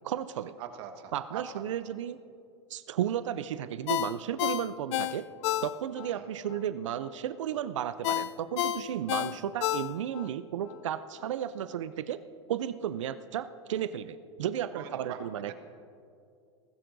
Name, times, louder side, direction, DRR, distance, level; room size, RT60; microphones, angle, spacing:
voice 1, 0.0-0.5 1.1-2.2 2.7-5.2 5.6-12.2 12.5-15.5, right 10 dB, 85° right, 13 dB, 0.5 m, -34 dB
voice 2, 0.6-1.6 6.1-6.3 14.7-15.5, right 8 dB, 55° right, 6 dB, 1.5 m, -43 dB
Ringtone, 3.9-6.1 6.5-6.6 8.0-10.3 10.7-10.8, left 13 dB, 65° left, 0.4 m, -30 dB
20.5 x 15.0 x 2.6 m, 2.4 s
hypercardioid pair, 105°, 15 cm